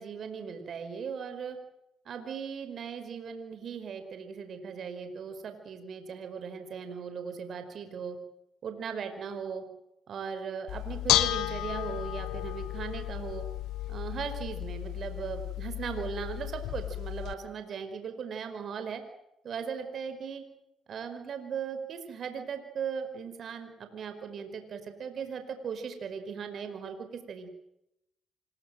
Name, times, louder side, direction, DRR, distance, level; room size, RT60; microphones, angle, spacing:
voice 1, 0.0-1.6 2.0-8.2 8.6-9.6 10.1-13.5 13.9-19.0 19.4-20.4 20.9-27.5, right 6 dB, 60° right, 8 dB, 5.0 m, -38 dB
Bell / Dishes pots and pans, 10.7-17.3, left 14 dB, 85° left, 1.3 m, -33 dB
26.5 x 22.5 x 7.7 m, 0.84 s
supercardioid pair, 70°, 0 cm